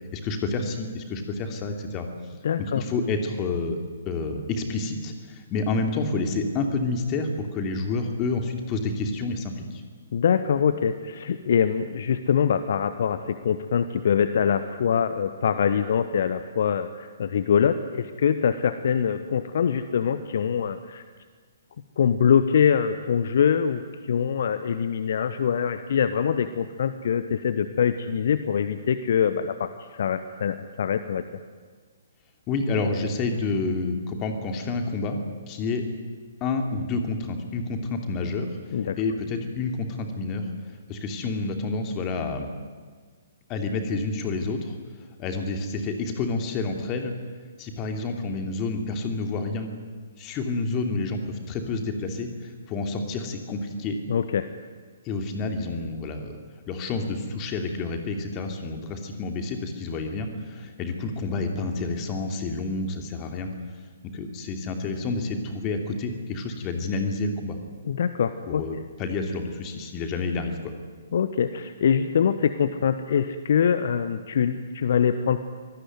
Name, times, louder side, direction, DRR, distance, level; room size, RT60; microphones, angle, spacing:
voice 1, 0.1-2.1 2.7-3.8 4.0-9.8 32.5-35.2 35.5-35.8 36.4-42.5 43.5-44.8 45.2-47.1 47.6-49.7 50.2-54.0 55.0-56.4 56.7-63.5 64.1-67.6 68.5-70.7, left 3 dB, 25° left, 5 dB, 3.0 m, -29 dB
voice 2, 2.4-2.8 10.1-21.0 22.0-31.2 38.7-39.0 54.1-54.5 67.8-68.6 71.1-75.4, left 7 dB, 50° left, 12 dB, 1.1 m, -24 dB
26.0 x 18.0 x 9.5 m, 1.5 s
figure-of-eight pair, 125°, 0 cm